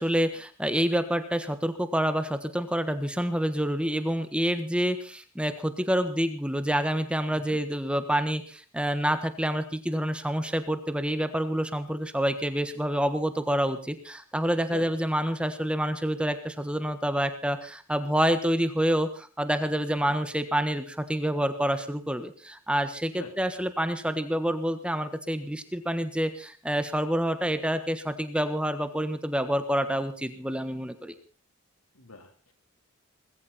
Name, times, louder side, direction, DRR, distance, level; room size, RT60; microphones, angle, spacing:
voice 1, 0.0-31.1, equal, 5° right, 10 dB, 1.3 m, -27 dB
voice 2, 7.3-7.6 14.7-14.9 19.9-20.1 23.1-23.3 31.9-32.5, left 2 dB, 85° left, 6 dB, 3.9 m, -44 dB
20.5 x 16.5 x 4.3 m, 0.38 s
head